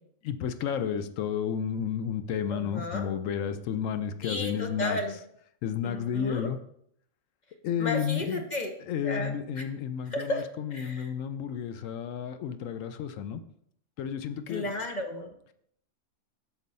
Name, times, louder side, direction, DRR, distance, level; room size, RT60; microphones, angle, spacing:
voice 1, 0.2-5.0 5.6-6.6 7.6-8.4 8.9-13.4 14.0-14.7, left 8 dB, 75° left, 10 dB, 0.9 m, -32 dB
voice 2, 2.5-3.1 4.2-5.2 5.8-6.5 7.8-8.7 9.0-9.6 10.0-10.4 10.7-11.1 14.5-15.5, left 2 dB, 45° left, 3 dB, 0.7 m, -33 dB
6.1 x 4.3 x 5.3 m, 0.69 s
omnidirectional pair, 1.4 m